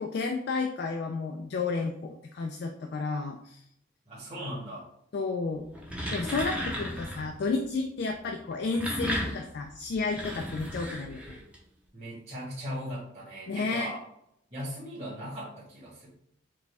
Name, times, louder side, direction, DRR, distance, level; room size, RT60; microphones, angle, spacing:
voice 1, 0.0-3.6 5.1-5.6 6.1-11.4 13.5-13.9, left 4 dB, 55° left, 3 dB, 0.3 m, -32 dB
voice 2, 4.1-4.8 10.5-10.6 11.9-14.0 14.5-16.1, equal, 35° right, -11 dB, 1.3 m, -38 dB
sound 1, 5.6-7.3 8.5-11.6, equal, 5° right, 0.6 m, -35 dB
4.9 x 2.2 x 3.3 m, 0.74 s
head